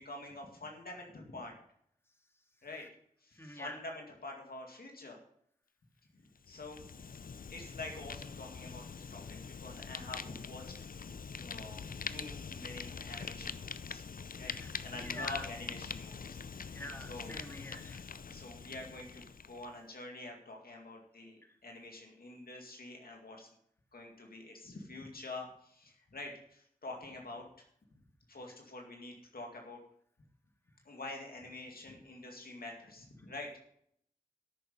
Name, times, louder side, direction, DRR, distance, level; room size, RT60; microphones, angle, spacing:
voice 1, 0.0-1.5 2.6-2.9 3.2-5.2 6.1-6.9 7.5-14.0 14.4-14.5 14.8-16.8 17.1-17.3 18.3-23.5 23.9-27.4 28.3-29.8 30.8-33.6, left 2 dB, 90° left, 1 dB, 2.1 m, -47 dB
voice 2, 3.4-3.8 14.4-14.7 15.0-15.5 16.7-18.0 21.4-21.5, left 1 dB, 15° left, 4 dB, 1.9 m, -46 dB
Fire, 6.4-19.7, left 5 dB, 70° left, 0.5 m, -44 dB
13.0 x 6.8 x 5.3 m, 0.68 s
cardioid pair, 40°, 15 cm